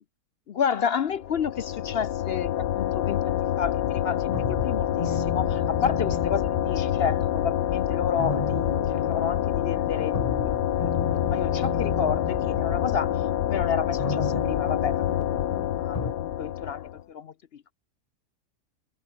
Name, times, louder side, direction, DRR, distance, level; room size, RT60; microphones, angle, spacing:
voice 1, 0.5-10.5 10.8-15.2 15.8-17.7, left 7 dB, 60° left, 0.6 m, -31 dB
sound 1, 1.2-17.0, left 12 dB, 85° left, 1.4 m, -27 dB
sound 2, 3.7-16.1, left 2 dB, 20° left, 1.9 m, -35 dB
omnidirectional pair, 1.7 m